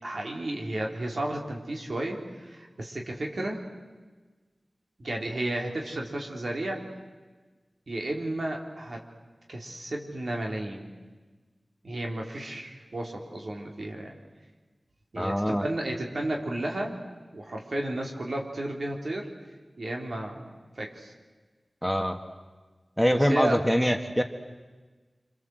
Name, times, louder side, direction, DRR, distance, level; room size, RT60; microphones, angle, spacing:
voice 1, 0.0-3.6 5.0-6.8 7.9-9.0 9.5-10.9 11.8-14.1 15.1-17.0 17.3-19.3 19.8-20.5 20.8-21.1 23.1-23.6, right 1 dB, 75° right, 1 dB, 4.1 m, -33 dB
voice 2, 15.2-15.6 21.8-22.2 23.0-24.2, equal, ahead, 6 dB, 1.9 m, -24 dB
27.0 x 26.5 x 8.0 m, 1.3 s
wide cardioid pair, 45°, 0 cm